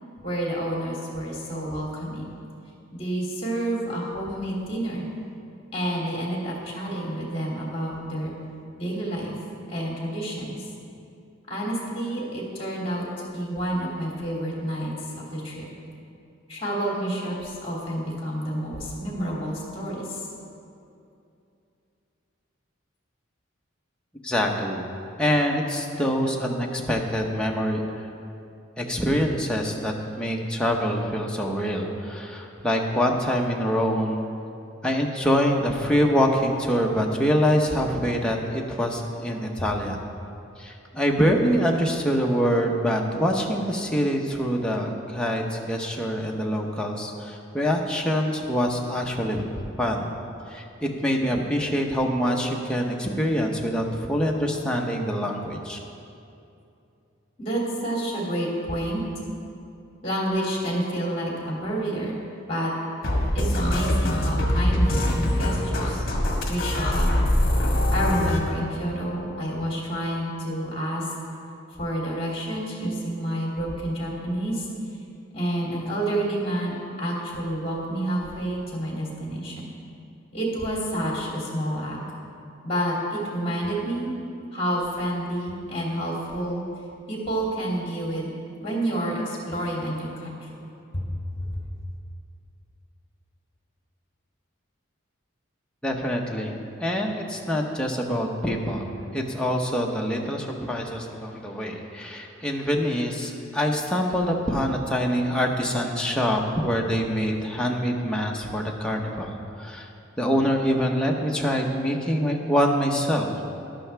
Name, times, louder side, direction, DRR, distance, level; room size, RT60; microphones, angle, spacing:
voice 1, 0.2-2.2 2.9-5.1 5.7-8.3 8.8-9.4 9.7-10.6 11.5-13.0 13.3-15.7 16.5-20.3 57.4-59.0 60.0-62.2 62.5-62.7 63.3-66.0 66.5-67.1 67.9-71.1 71.7-74.7 75.3-79.6 80.3-82.0 82.6-84.1 84.5-86.6 87.1-88.3 88.6-90.5 90.9-91.6, right 1 dB, 30° left, -3 dB, 2.6 m, -29 dB
voice 2, 24.2-24.8 25.2-27.8 28.8-34.2 34.8-40.0 40.6-49.4 49.8-50.1 50.5-55.8 95.8-109.9 110.2-113.3, equal, 5° left, -1 dB, 0.9 m, -25 dB
sound 1, 63.0-68.4, left 1 dB, 45° left, 1.5 m, -23 dB
13.5 x 11.5 x 3.4 m, 2.6 s
head